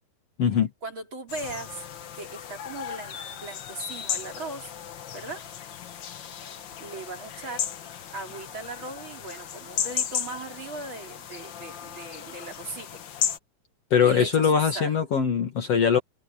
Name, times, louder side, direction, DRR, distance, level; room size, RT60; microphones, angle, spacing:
voice 1, 0.8-1.8 2.1-4.7 5.1-5.5 6.8-7.6 8.1-13.2 14.0-15.0, right 3 dB, 35° right, 3.8 m, -38 dB
sound 1, 1.3-13.4, left 8 dB, 75° left, 1.0 m, -35 dB
voice 2, 13.9-16.0, left 7 dB, 50° left, 2.6 m, -21 dB
omnidirectional pair, 3.9 m